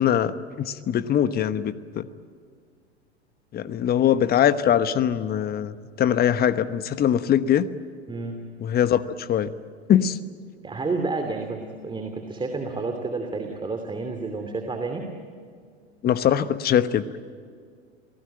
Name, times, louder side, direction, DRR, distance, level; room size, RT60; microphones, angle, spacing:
voice 1, 0.0-2.1 3.5-7.7 8.6-9.5 9.9-10.2 16.0-17.2, left 10 dB, 30° left, 14 dB, 1.1 m, -22 dB
voice 2, 10.6-15.1, right 3 dB, 15° right, 4 dB, 2.9 m, -30 dB
28.5 x 19.0 x 9.0 m, 2.1 s
hypercardioid pair, 90°, 33 cm